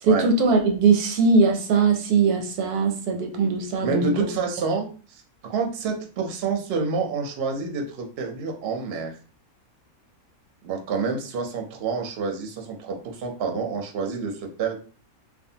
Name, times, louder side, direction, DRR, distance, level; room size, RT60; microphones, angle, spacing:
voice 1, 0.0-4.1, right 4 dB, 85° right, 3 dB, 1.1 m, -20 dB
voice 2, 3.8-9.2 10.6-14.8, right 4 dB, 60° right, 2 dB, 0.7 m, -28 dB
2.5 x 2.3 x 2.7 m, 0.38 s
omnidirectional pair, 1.6 m